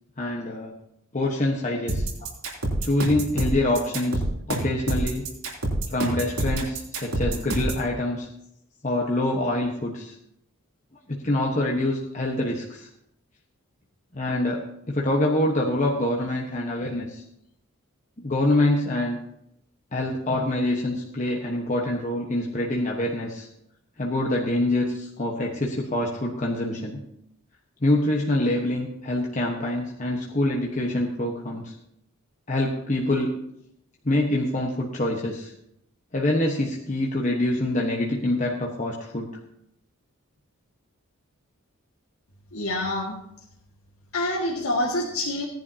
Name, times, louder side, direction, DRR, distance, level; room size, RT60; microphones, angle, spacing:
voice 1, 0.2-0.7 1.1-2.1 2.8-4.2 4.5-5.2 5.9-8.3 8.8-10.1 11.1-12.9 14.1-17.2 18.2-19.2 19.9-23.5 24.0-27.0 27.8-31.7 32.5-33.3 34.0-35.5 36.1-39.3, left 1 dB, 35° left, -2 dB, 1.2 m, -25 dB
sound 1, 1.9-7.9, right 1 dB, 80° right, 3.1 m, -27 dB
voice 2, 42.5-43.2 44.1-45.5, left 1 dB, 80° left, -3 dB, 1.9 m, -26 dB
17.5 x 10.5 x 2.8 m, 0.77 s
head